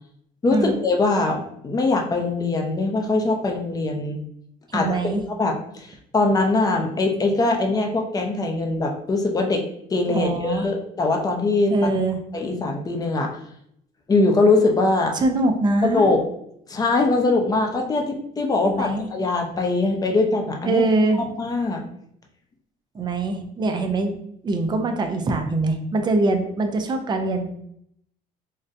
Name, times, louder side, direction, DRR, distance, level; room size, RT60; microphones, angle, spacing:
voice 1, 0.4-4.2 4.7-11.9 12.3-13.4 14.1-15.2 15.8-16.2 16.7-20.8 21.4-21.8, left 3 dB, 20° left, 2 dB, 0.6 m, -22 dB
voice 2, 4.7-5.2 10.1-10.7 11.7-12.2 15.1-16.1 18.6-19.1 20.6-21.2 22.9-24.2 24.4-27.4, right 2 dB, 25° right, 5 dB, 0.5 m, -23 dB
3.7 x 2.2 x 2.6 m, 0.72 s
cardioid pair, 115°, 16 cm